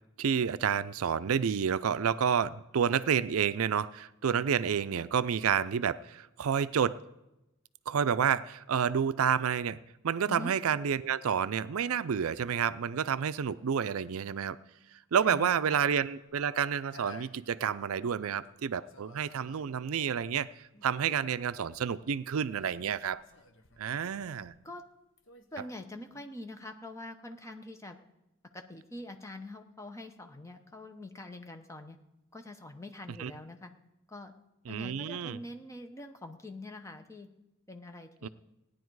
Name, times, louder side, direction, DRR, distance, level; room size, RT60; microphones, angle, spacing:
voice 1, 0.2-7.0 7.9-9.8 10.0-14.6 15.1-20.5 20.8-23.2 23.8-24.5 33.2-33.3 34.7-35.4 38.2-38.3, right 7 dB, 75° right, 0.4 m, -29 dB
voice 2, 15.2-15.8 24.6-24.8 25.5-28.0 28.5-32.0 32.3-33.7 34.1-34.3 34.7-37.3 37.7-38.3, left 1 dB, 15° left, 0.8 m, -44 dB
sound 1, 16.2-18.5 18.9-24.9 25.2-26.2, left 1 dB, 60° left, 1.1 m, -56 dB
17.0 x 10.0 x 4.7 m
head